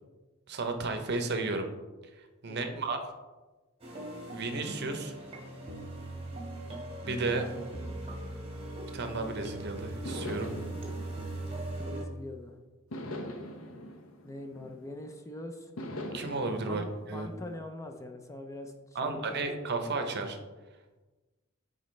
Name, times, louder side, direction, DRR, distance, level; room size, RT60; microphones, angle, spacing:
voice 1, 0.5-1.7 2.4-3.0 4.3-5.1 7.0-7.5 8.9-10.5 16.1-17.3 18.9-20.4, right 3 dB, 50° right, 6 dB, 0.7 m, -33 dB
sound 1, 3.8-12.0, right 1 dB, 30° right, 1.3 m, -40 dB
sound 2, 10.0-12.3 12.9-15.2 15.8-17.6, left 1 dB, 75° left, 0.7 m, -42 dB
voice 2, 11.8-12.5 14.2-15.7 16.7-19.5, left 1 dB, 15° left, 4 dB, 0.4 m, -43 dB
9.2 x 3.9 x 3.2 m, 1.2 s
head